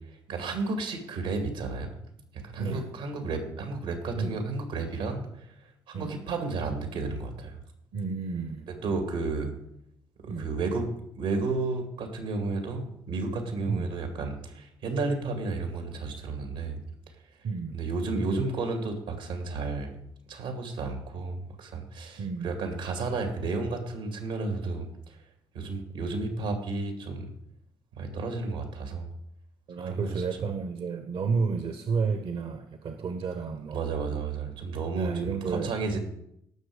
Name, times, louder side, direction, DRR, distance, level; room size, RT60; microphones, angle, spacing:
voice 1, 0.3-1.9 2.3-5.5 5.9-7.6 8.7-9.5 10.2-16.8 17.7-19.9 20.3-25.2 25.5-27.3 27.9-29.1 29.8-30.2 33.7-36.0, right 3 dB, 90° right, 5 dB, 2.3 m, -32 dB
voice 2, 2.6-2.9 4.1-4.4 5.9-6.1 7.9-8.9 10.3-10.5 13.7-14.0 17.4-17.8 22.2-22.5 29.7-33.9 34.9-35.7, right 5 dB, 65° right, 7 dB, 1.0 m, -31 dB
17.5 x 6.3 x 5.1 m, 0.75 s
hypercardioid pair, 50°, 10 cm